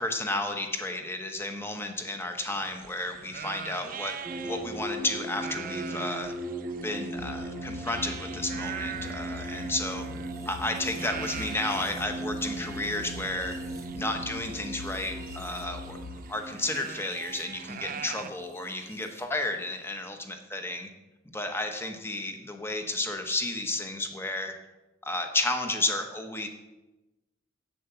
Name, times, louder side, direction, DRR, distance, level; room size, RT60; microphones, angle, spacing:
voice 1, 0.0-4.2 4.4-6.3 6.8-10.1 10.5-13.6 13.9-16.0 16.3-20.9 21.3-24.5 25.0-26.5, left 2 dB, 10° left, 5 dB, 1.0 m, -32 dB
sound 1, 2.4-18.3, right 8 dB, 45° right, 0.4 m, -43 dB
sound 2, 4.2-19.2, right 2 dB, 15° right, 1.0 m, -38 dB
sound 3, 7.2-16.2, left 6 dB, 90° left, 0.4 m, -44 dB
7.8 x 7.7 x 6.9 m, 1.0 s
head